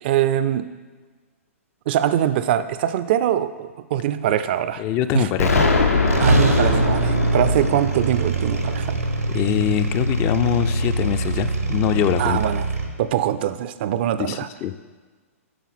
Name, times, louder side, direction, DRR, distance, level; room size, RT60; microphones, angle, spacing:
voice 1, 0.0-0.7 1.9-4.8 5.1-5.3 6.2-9.0 12.2-12.7 13.0-14.5, right 11 dB, 45° right, 13 dB, 0.4 m, -22 dB
voice 2, 4.8-5.7 9.3-12.4 14.2-14.8, left 11 dB, 30° left, 11 dB, 0.4 m, -23 dB
Explosion, 5.4-10.2, left 3 dB, 85° left, 1.0 m, -23 dB
sound 1, 6.1-12.9, right 2 dB, 90° right, 1.0 m, -23 dB
9.3 x 5.9 x 4.2 m, 1.4 s
figure-of-eight pair, 115°, 8 cm